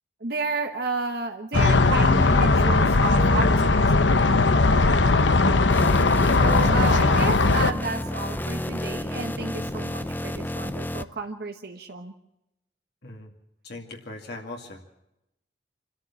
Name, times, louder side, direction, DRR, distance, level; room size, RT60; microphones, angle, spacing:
voice 1, 0.2-4.2 6.4-12.1, right 3 dB, 60° right, 4 dB, 1.2 m, -32 dB
sound 1, 1.5-7.7, left 3 dB, 80° left, 1.0 m, -19 dB
sound 2, 5.7-11.0, left 1 dB, 10° left, 0.7 m, -31 dB
voice 2, 13.6-14.8, left 2 dB, 60° left, 1 dB, 2.3 m, -39 dB
26.5 x 13.5 x 7.2 m, 0.88 s
head